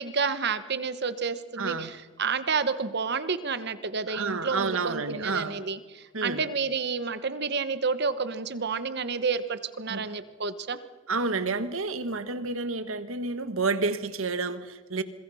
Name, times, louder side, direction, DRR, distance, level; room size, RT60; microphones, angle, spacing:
voice 1, 0.0-10.8, right 5 dB, 55° right, 1.2 m, -30 dB
voice 2, 1.6-1.9 4.1-5.5 6.1-6.4 9.9-10.0 11.1-15.0, right 4 dB, 80° right, 1.5 m, -30 dB
26.5 x 22.5 x 5.7 m
head